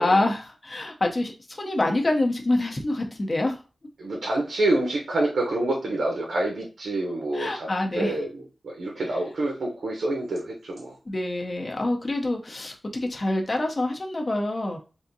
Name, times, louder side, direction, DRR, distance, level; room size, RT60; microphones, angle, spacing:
voice 1, 0.0-3.6 7.3-8.1 11.1-14.8, left 2 dB, 30° left, 2 dB, 0.6 m, -26 dB
voice 2, 4.0-7.7 7.9-10.9, right 2 dB, 80° right, 0 dB, 0.8 m, -27 dB
3.5 x 2.6 x 2.6 m, 0.33 s
wide cardioid pair, 155°, 0 cm